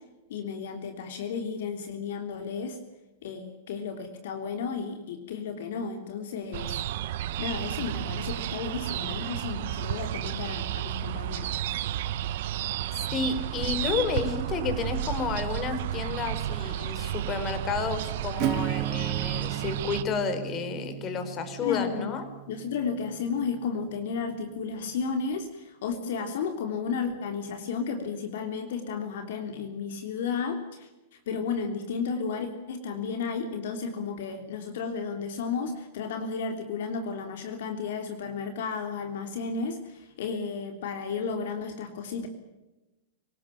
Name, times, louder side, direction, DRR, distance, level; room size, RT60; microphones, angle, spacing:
voice 1, 0.3-2.8 3.2-6.8 7.4-11.6 21.6-22.1 22.5-30.9 31.3-42.3, left 5 dB, 65° left, 5 dB, 3.3 m, -33 dB
sound 1, 6.5-20.0, right 12 dB, 60° right, 1.2 m, -32 dB
voice 2, 13.1-22.2, left 5 dB, 30° left, 9 dB, 4.6 m, -31 dB
Acoustic guitar / Strum, 18.4-23.9, right 16 dB, 45° right, 1.5 m, -35 dB
25.5 x 18.5 x 9.1 m, 1.1 s
hypercardioid pair, 105°, 0 cm